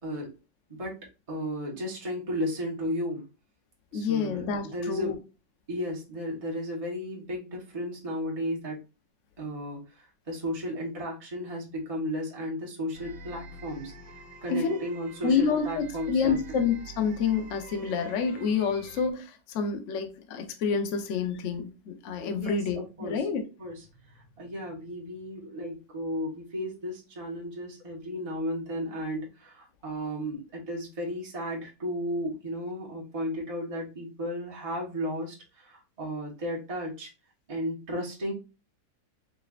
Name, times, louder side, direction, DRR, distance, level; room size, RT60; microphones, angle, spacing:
voice 1, 1.3-3.3 3.9-5.2 5.7-8.8 9.4-13.9 14.4-16.4 22.3-23.3 23.6-37.1 37.5-38.3, equal, 20° right, 1.2 m, -34 dB
voice 2, 3.9-5.1 14.5-14.8 15.2-23.4, left 5 dB, 60° left, 0.8 m, -28 dB
sound 1, 12.9-19.1, right 4 dB, 85° right, 1.4 m, -46 dB
4.6 x 3.3 x 2.4 m
omnidirectional pair, 1.9 m